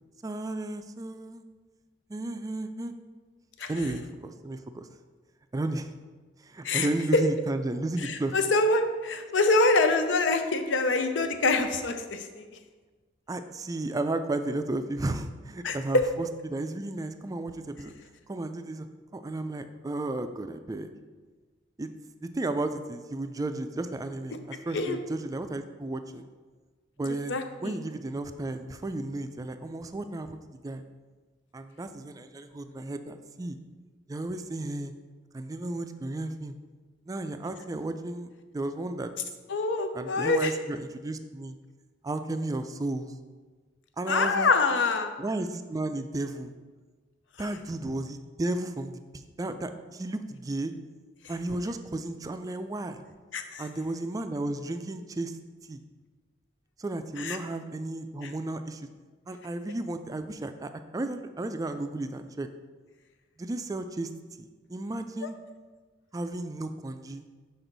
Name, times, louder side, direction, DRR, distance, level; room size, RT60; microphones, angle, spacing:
voice 1, 0.2-1.4 2.1-2.9 3.7-4.9 5.5-5.9 6.4-8.3 13.3-17.9 18.3-18.9 19.1-20.9 21.8-21.9 22.2-26.3 27.0-30.8 31.5-33.6 34.1-34.9 35.3-36.5 37.1-38.3 38.5-39.1 39.9-41.5 42.0-43.1 44.0-44.5 45.2-46.5 47.4-50.7 51.3-53.0 53.6-55.4 55.7-55.8 56.8-58.9 59.3-62.5 63.4-64.1 64.4-65.4 66.1-67.3, right 2 dB, 20° right, 9 dB, 0.3 m, -33 dB
voice 2, 6.6-7.2 8.0-12.4 15.6-16.1 24.7-25.0 27.3-27.8 39.5-40.5 44.1-45.1 53.3-53.7 57.2-57.4 58.2-58.3, left 3 dB, 80° left, 7 dB, 0.6 m, -25 dB
6.0 x 5.4 x 3.9 m, 1.4 s
head